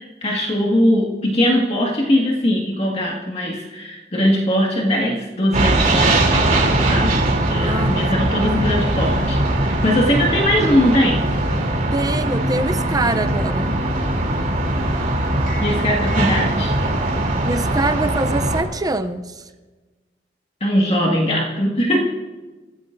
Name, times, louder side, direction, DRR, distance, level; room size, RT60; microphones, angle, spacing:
voice 1, 0.0-6.2 6.9-11.3 15.6-16.8 20.6-22.0, left 1 dB, 35° left, -2 dB, 1.8 m, -20 dB
sound 1, 5.5-18.6, right 1 dB, 45° right, 3.2 m, -20 dB
voice 2, 7.6-8.3 11.9-13.9 17.4-19.5, right 2 dB, 20° right, 9 dB, 0.6 m, -24 dB
29.0 x 15.0 x 2.6 m, 1.3 s
head